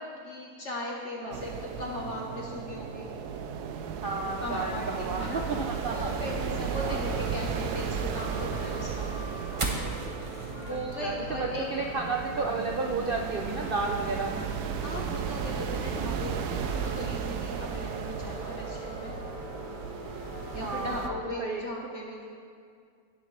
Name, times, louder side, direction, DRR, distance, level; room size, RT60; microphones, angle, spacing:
voice 1, 0.2-3.1 4.4-5.5 5.9-9.1 10.6-11.7 14.8-19.1 20.5-22.3, left 1 dB, 50° left, -2 dB, 1.4 m, -38 dB
sound 1, 1.3-21.1, right 7 dB, 85° right, 1.2 m, -35 dB
voice 2, 4.0-6.1 6.8-7.1 11.0-14.3 20.5-21.6, right 3 dB, 65° right, 1 dB, 0.5 m, -32 dB
sound 2, 4.1-21.2, left 1 dB, 85° left, 2.3 m, -43 dB
sound 3, 7.5-14.2, right 3 dB, 25° right, 0.9 m, -41 dB
18.0 x 7.2 x 3.2 m, 2.2 s
omnidirectional pair, 1.7 m